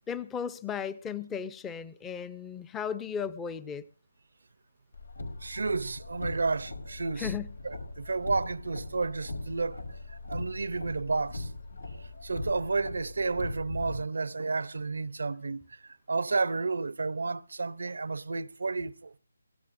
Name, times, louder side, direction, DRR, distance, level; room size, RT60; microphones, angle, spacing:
voice 1, 0.1-3.8 7.2-7.5, left 7 dB, 10° left, 0.6 m, -35 dB
Car, 4.9-14.0, left 2 dB, 90° left, 4.7 m, -40 dB
voice 2, 5.4-7.3 7.6-9.8 10.1-11.5 12.2-15.8 16.1-19.2, right 3 dB, 70° right, 0.7 m, -31 dB
23.5 x 16.5 x 2.7 m
hypercardioid pair, 165°, 0 cm